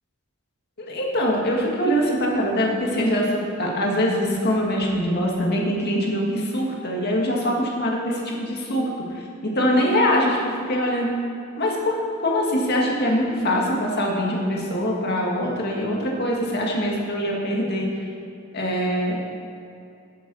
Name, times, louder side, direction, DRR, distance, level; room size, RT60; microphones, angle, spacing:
voice 1, 0.8-10.4 10.7-11.1 11.6-12.0 12.2-17.9 18.5-19.2, equal, 50° left, -2 dB, 1.9 m, -23 dB
11.0 x 7.0 x 6.2 m, 2.6 s
head